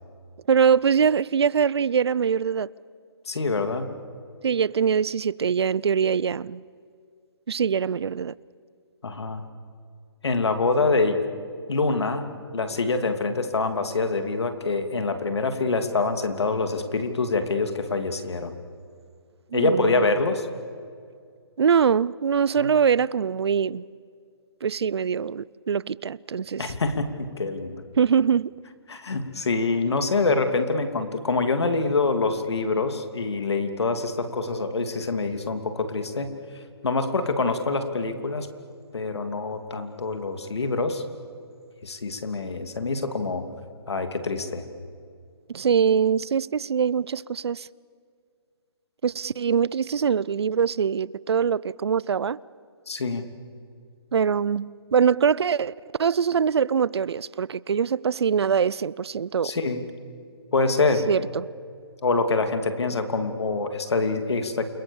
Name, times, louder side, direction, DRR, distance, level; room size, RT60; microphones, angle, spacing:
voice 1, 0.5-2.7 4.4-6.6 7.5-8.3 19.5-20.1 21.6-23.8 24.6-26.6 28.0-28.5 45.5-47.7 49.0-52.4 54.1-55.7 56.0-59.6 61.1-61.5, right 7 dB, 75° right, 0.6 m, -23 dB
voice 2, 3.3-3.9 9.0-9.4 10.2-11.2 11.7-12.2 12.5-18.5 19.5-20.5 22.6-22.7 26.6-27.8 28.9-36.3 36.8-38.5 38.9-41.0 41.8-43.5 43.9-44.7 52.9-53.2 59.4-59.8 60.5-61.1 62.0-64.6, left 3 dB, 85° left, 2.9 m, -25 dB
28.5 x 23.0 x 7.2 m
hypercardioid pair, 160°, 14 cm